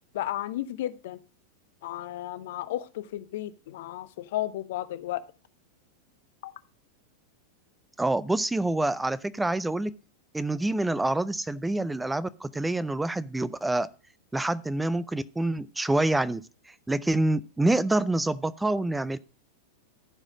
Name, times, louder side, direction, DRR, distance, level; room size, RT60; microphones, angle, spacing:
voice 1, 0.1-1.2 1.8-5.2 6.4-6.5, left 14 dB, 55° left, 14 dB, 0.7 m, -33 dB
voice 2, 8.0-9.9 10.3-13.9 14.3-19.2, right 2 dB, 5° right, 18 dB, 0.4 m, -27 dB
14.5 x 4.9 x 5.0 m, 0.34 s
figure-of-eight pair, 90°, 0 cm